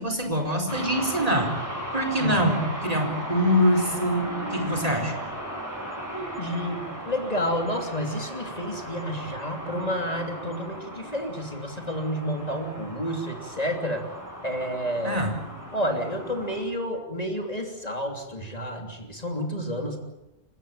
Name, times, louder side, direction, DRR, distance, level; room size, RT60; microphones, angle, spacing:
voice 1, 0.0-1.5 1.9-5.2 15.0-15.3, equal, 35° right, 4 dB, 4.5 m, -24 dB
sound 1, 0.7-16.6, equal, 15° right, 7.6 m, -36 dB
voice 2, 6.1-14.0 14.4-15.2 15.7-20.0, equal, 35° left, 3 dB, 3.2 m, -30 dB
28.5 x 16.5 x 8.9 m, 0.94 s
omnidirectional pair, 1.1 m